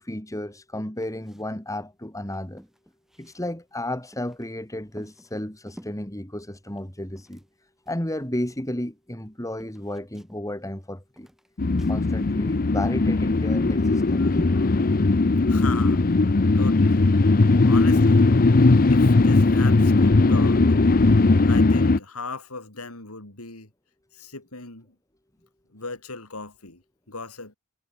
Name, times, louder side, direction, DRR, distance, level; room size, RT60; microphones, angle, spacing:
voice 1, 0.0-2.6 3.2-7.4 7.9-11.3 11.9-14.5, left 1 dB, 15° left, 3.6 m, -32 dB
sound 1, 1.0-1.6 1.9-2.0 2.3-4.5 4.9-6.1 6.6-7.6 7.9-9.3 9.6-10.8 11.2-12.0, equal, ahead, 4.7 m, -51 dB
sound 2, 11.6-22.0, left 3 dB, 40° left, 0.7 m, -18 dB
voice 2, 15.5-16.1 16.5-17.1 17.4-18.4 18.8-20.7 21.4-23.7 24.1-24.9 25.7-27.6, left 3 dB, 90° left, 4.8 m, -37 dB
head